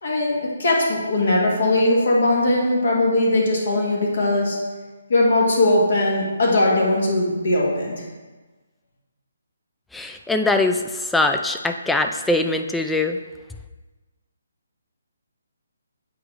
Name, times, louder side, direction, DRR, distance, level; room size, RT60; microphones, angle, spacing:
voice 1, 0.0-4.6 5.1-8.1, left 1 dB, 60° left, -2 dB, 1.7 m, -20 dB
voice 2, 9.9-13.2, left 2 dB, 5° left, 5 dB, 0.3 m, -22 dB
7.9 x 5.1 x 3.3 m, 1.3 s
figure-of-eight pair, 140°, 0 cm